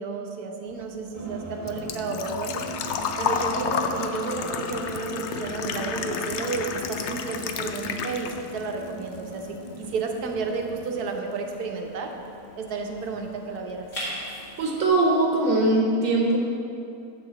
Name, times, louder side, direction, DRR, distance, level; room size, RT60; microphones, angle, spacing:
voice 1, 0.0-2.7 3.2-12.1 12.6-13.9, right 4 dB, 80° right, 3 dB, 1.3 m, -32 dB
Engine / Trickle dribble / Fill (with liquid), 0.7-8.7 9.0-10.0 10.3-10.4 12.3-12.4 12.5-12.9 13.3-13.4 13.6-13.7, left 6 dB, 70° left, 0.6 m, -31 dB
sound 1, 1.1-10.9, right 1 dB, 35° right, 1.2 m, -40 dB
sound 2, 8.0-15.7, equal, 45° left, 2.2 m, -43 dB
voice 2, 14.6-16.4, right 2 dB, 60° right, -1 dB, 1.2 m, -21 dB
9.5 x 3.8 x 7.0 m, 2.7 s
omnidirectional pair, 1.6 m